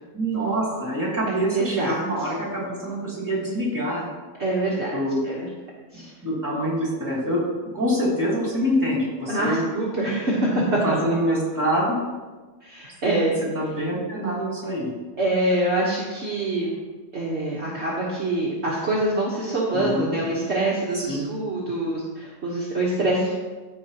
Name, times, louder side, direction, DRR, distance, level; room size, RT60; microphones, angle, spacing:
voice 1, 0.1-4.0 4.9-5.2 5.9-7.4 7.7-9.6 10.8-12.0 13.0-13.1 13.5-14.9 19.7-20.1 20.9-21.2, equal, 10° right, -6 dB, 2.6 m, -25 dB
voice 2, 1.3-2.0 4.4-4.9 5.2-5.5 5.9-6.1 9.3-11.0 12.6-13.3 15.2-16.7 17.1-23.3, right 2 dB, 45° right, -5 dB, 1.4 m, -25 dB
14.0 x 4.8 x 2.9 m, 1.3 s
omnidirectional pair, 1.6 m